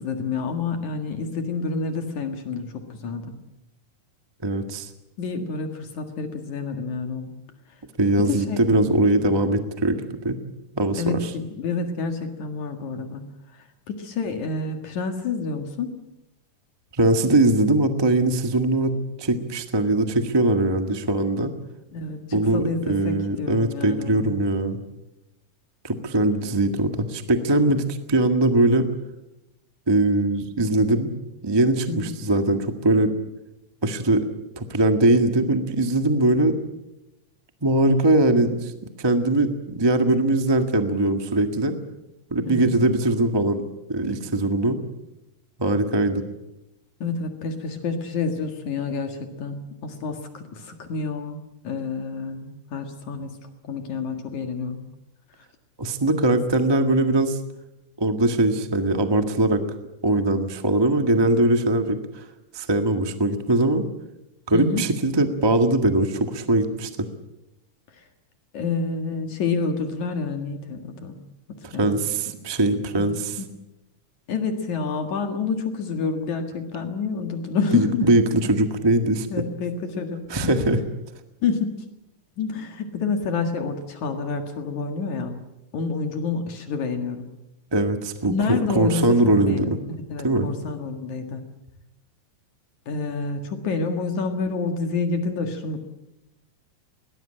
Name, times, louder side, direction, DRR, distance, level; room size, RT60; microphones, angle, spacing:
voice 1, 0.0-3.3 5.2-7.3 8.2-8.6 11.0-13.2 13.9-15.9 21.9-24.3 31.9-32.1 42.4-42.7 47.0-51.4 51.6-53.4 53.7-54.8 64.5-64.8 68.5-71.2 71.7-71.9 72.9-73.0 73.4-73.5 74.3-78.0 79.3-80.5 81.4-81.7 82.4-85.4 85.7-87.3 88.3-91.4 92.9-95.8, left 4 dB, 65° left, 5 dB, 3.1 m, -28 dB
voice 2, 4.4-4.9 8.0-10.4 10.7-11.3 16.9-18.9 19.2-21.5 22.3-24.8 25.8-28.9 29.9-31.1 31.4-33.1 33.8-34.2 34.6-36.6 37.6-38.7 39.0-41.8 42.3-43.6 43.9-44.8 45.6-46.2 55.8-57.4 58.0-59.6 60.0-62.2 62.5-63.9 64.5-67.1 71.6-73.4 77.7-79.4 80.3-80.8 87.7-89.8 90.2-90.5, right 2 dB, 30° right, 6 dB, 0.5 m, -21 dB
22.0 x 19.5 x 8.9 m, 0.93 s
omnidirectional pair, 3.9 m